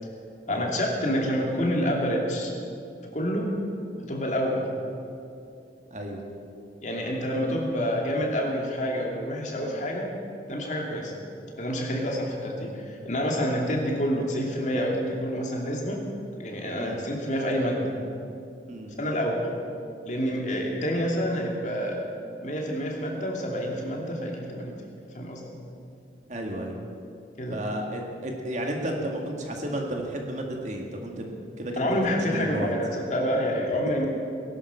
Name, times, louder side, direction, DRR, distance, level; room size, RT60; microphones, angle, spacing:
voice 1, 0.5-2.5 3.1-3.5 4.1-4.6 6.8-10.1 10.5-11.1 11.6-16.0 16.4-18.0 19.0-19.6 20.0-22.0 22.4-24.7 25.1-25.4 27.4-27.6 31.8-34.1, equal, 45° left, -1 dB, 2.7 m, -28 dB
voice 2, 26.3-26.8 27.5-32.7, right 1 dB, 45° right, 1 dB, 2.1 m, -33 dB
18.5 x 11.0 x 7.1 m, 2.5 s
head